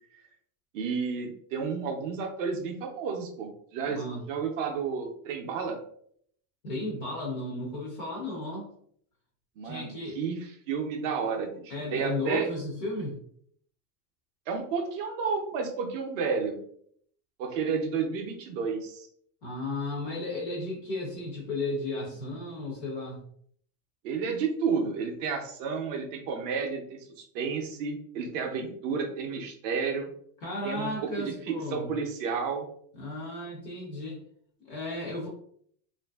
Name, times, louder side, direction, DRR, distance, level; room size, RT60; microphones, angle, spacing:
voice 1, 0.7-5.8 9.6-12.5 14.5-16.6 17.4-19.1 24.0-30.1 30.6-32.7, right 5 dB, 50° right, 2 dB, 0.5 m, -31 dB
voice 2, 3.9-4.2 6.6-8.7 9.6-10.2 11.7-13.2 19.4-23.2 30.4-31.9 32.9-34.2 34.6-35.3, left 2 dB, 35° left, -3 dB, 0.3 m, -34 dB
2.5 x 2.5 x 2.2 m, 0.64 s
supercardioid pair, 165°, 50 cm